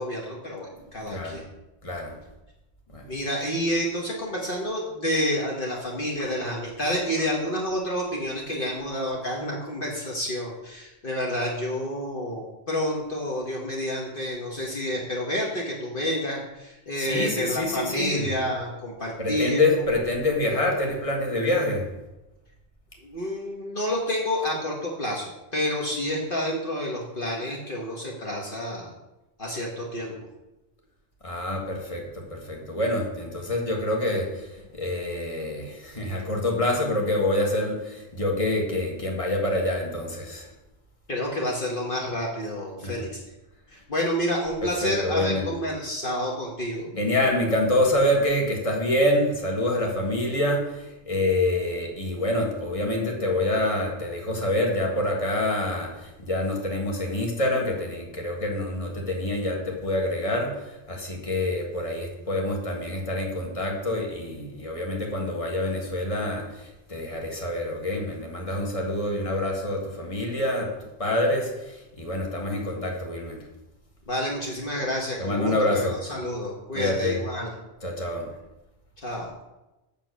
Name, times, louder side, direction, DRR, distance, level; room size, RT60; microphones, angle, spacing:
voice 1, 0.0-1.4 3.1-19.7 23.0-25.2 25.5-28.9 29.4-30.1 41.1-43.2 43.7-46.8 74.1-77.5 79.0-79.3, left 1 dB, 55° left, -2 dB, 1.6 m, -29 dB
voice 2, 0.8-1.4 1.8-2.1 2.9-3.0 17.0-18.3 19.2-21.8 31.2-34.5 34.7-40.5 42.8-42.9 44.6-45.4 46.9-70.7 71.0-73.4 75.2-76.0 76.7-77.2 77.8-78.2, left 1 dB, 30° left, 0 dB, 1.7 m, -26 dB
7.6 x 7.1 x 6.2 m, 0.99 s
omnidirectional pair, 1.1 m